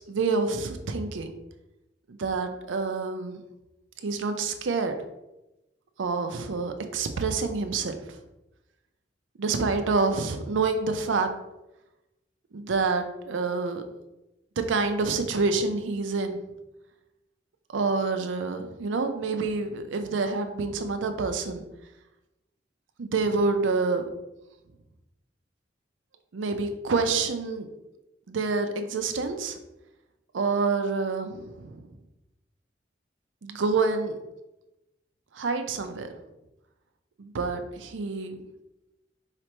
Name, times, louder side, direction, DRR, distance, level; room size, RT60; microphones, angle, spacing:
voice 1, 0.0-1.3 2.1-3.4 4.0-4.9 6.0-8.2 9.4-11.3 12.5-13.8 14.6-16.4 17.7-21.6 23.0-24.1 26.3-27.7 28.3-29.6 30.3-31.9 33.4-34.2 35.3-36.1 37.2-38.4, right 4 dB, 85° right, 7 dB, 0.5 m, -27 dB
4.9 x 3.2 x 3.0 m, 0.95 s
head